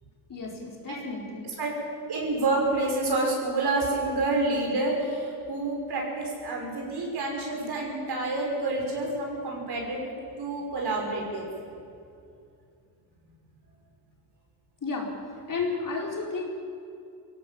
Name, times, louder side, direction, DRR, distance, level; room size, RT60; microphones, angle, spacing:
voice 1, 0.3-1.5 14.8-15.1 15.5-16.5, left 4 dB, 50° left, -1 dB, 4.6 m, -32 dB
voice 2, 2.1-10.1 10.4-11.5, right 2 dB, 70° right, -1 dB, 6.1 m, -28 dB
23.5 x 17.0 x 7.3 m, 2.5 s
cardioid pair, 105°, 40 cm